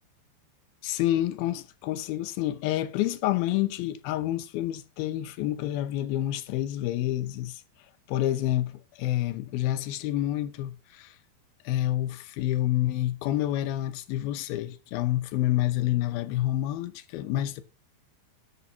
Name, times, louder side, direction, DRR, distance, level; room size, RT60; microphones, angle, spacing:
voice 1, 0.8-7.6 8.1-11.1 11.7-17.6, left 14 dB, 75° left, 2.6 m, -28 dB
17.0 x 6.2 x 2.8 m
omnidirectional pair, 4.5 m